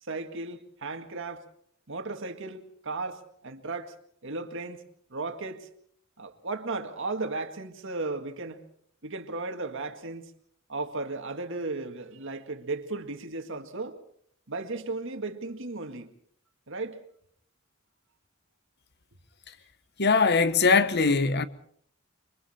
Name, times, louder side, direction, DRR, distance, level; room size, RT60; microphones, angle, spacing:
voice 1, 0.0-1.4 1.9-3.9 4.2-4.8 5.1-5.7 6.2-8.6 9.0-10.3 10.7-14.0 14.5-16.1 16.7-17.0, right 3 dB, 65° right, 2.0 m, -35 dB
voice 2, 20.0-21.4, left 4 dB, 50° left, 1.2 m, -21 dB
28.5 x 23.5 x 4.4 m
head